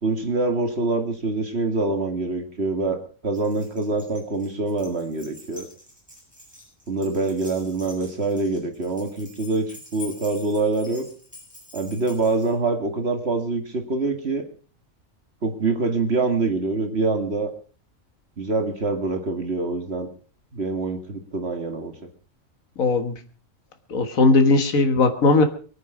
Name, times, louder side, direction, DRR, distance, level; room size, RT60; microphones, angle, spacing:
voice 1, 0.0-5.7 6.9-11.1 11.7-14.5 15.4-17.5 18.4-20.1 20.5-21.9, right 3 dB, 50° right, 6 dB, 2.2 m, -25 dB
Keys jangling, 3.3-12.5, left 2 dB, 5° right, 7.4 m, -46 dB
voice 2, 22.8-23.2 23.9-25.4, left 3 dB, 80° left, 7 dB, 2.0 m, -18 dB
24.0 x 9.1 x 5.0 m, 0.40 s
omnidirectional pair, 1.4 m